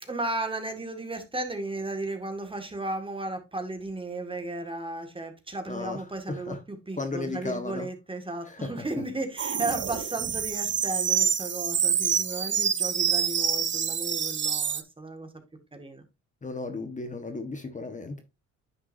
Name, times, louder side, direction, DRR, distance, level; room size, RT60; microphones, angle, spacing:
voice 1, 0.1-15.3 15.7-16.0, right 2 dB, 15° right, 1.9 m, -34 dB
voice 2, 5.7-6.6 6.9-7.9 8.4-8.7 16.4-18.2, left 3 dB, 25° left, 1.3 m, -35 dB
sound 1, 9.4-14.8, right 7 dB, 40° right, 0.9 m, -27 dB
9.9 x 6.0 x 2.7 m
cardioid pair, 90°, 30 cm